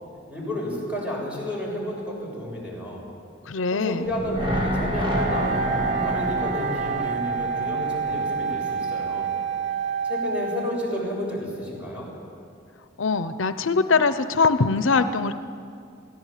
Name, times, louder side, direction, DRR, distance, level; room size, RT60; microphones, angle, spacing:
voice 1, 0.3-3.1 3.7-5.5 6.0-9.3 10.0-12.1, left 1 dB, 5° right, -3 dB, 7.2 m, -31 dB
voice 2, 3.5-4.1 13.0-15.3, left 4 dB, 75° left, 11 dB, 0.7 m, -22 dB
sound 1, 4.0-9.2 9.5-9.6, equal, 25° right, 5.7 m, -29 dB
Wind instrument woodwind instrument, 5.1-11.0, right 5 dB, 60° right, 0.8 m, -28 dB
22.0 x 16.5 x 9.2 m, 2.4 s
head